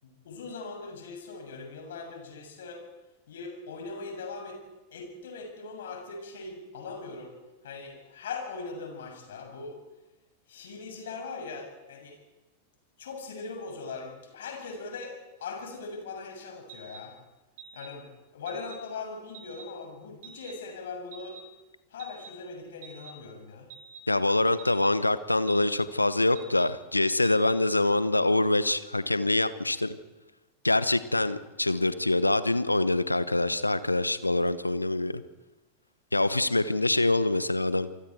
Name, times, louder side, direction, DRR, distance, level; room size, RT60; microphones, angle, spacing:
voice 1, 0.0-2.8 3.3-4.6 4.9-7.3 7.6-9.8 10.5-12.2 13.0-17.1 17.7-18.0 18.3-21.4 21.9-23.7, left 4 dB, 60° left, 2 dB, 7.3 m, -40 dB
sound 1, 16.7-17.0 17.6-17.9 18.5-18.7 19.3-19.6 20.2-20.5 21.1-21.4 22.0-22.3 22.8-23.1 23.7-24.0 24.6-24.9 25.5-25.8 26.4-26.6 27.2-27.5, right 7 dB, 55° right, 4.7 m, -47 dB
voice 2, 24.1-29.9 30.6-35.2 36.1-37.9, left 2 dB, 85° left, 14 dB, 1.1 m, -25 dB
28.0 x 24.0 x 4.7 m, 1.1 s
figure-of-eight pair, 90°, 0 cm